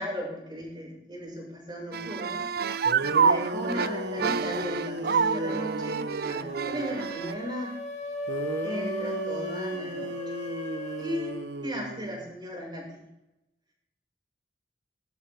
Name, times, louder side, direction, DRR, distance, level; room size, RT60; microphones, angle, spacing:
voice 1, 0.0-2.5 3.0-7.7 8.6-10.1 11.0-11.3 11.6-13.0, equal, 25° right, -2 dB, 6.2 m, -36 dB
sound 1, 1.9-7.3, right 6 dB, 60° right, 0.5 m, -28 dB
sound 2, 2.6-2.7 2.8-7.0 8.3-12.3, right 1 dB, 85° right, 1.1 m, -35 dB
sound 3, 6.4-11.4, left 1 dB, 40° left, 2.2 m, -37 dB
19.5 x 13.5 x 3.7 m, 0.87 s
head